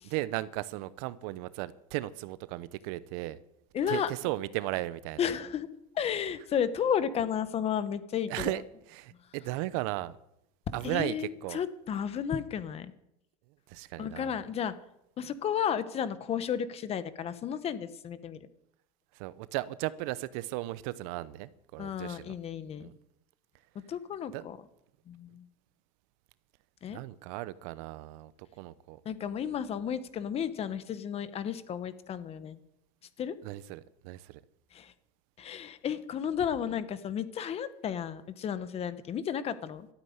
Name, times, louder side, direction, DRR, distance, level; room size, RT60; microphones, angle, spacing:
voice 1, 0.0-3.4 3.9-5.2 8.3-8.6 8.9-10.2 10.7-11.6 13.7-14.4 19.1-22.3 22.8-22.9 24.3-24.5 26.9-29.0 33.4-34.4, right 17 dB, 70° right, 0.8 m, -36 dB
voice 2, 3.7-4.1 5.2-5.7 5.9-8.5 10.8-12.9 14.0-14.7 15.2-18.5 21.8-22.9 23.9-24.6 25.1-25.5 26.8-27.0 29.0-32.6 33.2-33.3 34.7-34.9 35.4-39.9, left 8 dB, 35° left, 1.2 m, -33 dB
13.0 x 8.8 x 9.5 m
supercardioid pair, 130°, 19 cm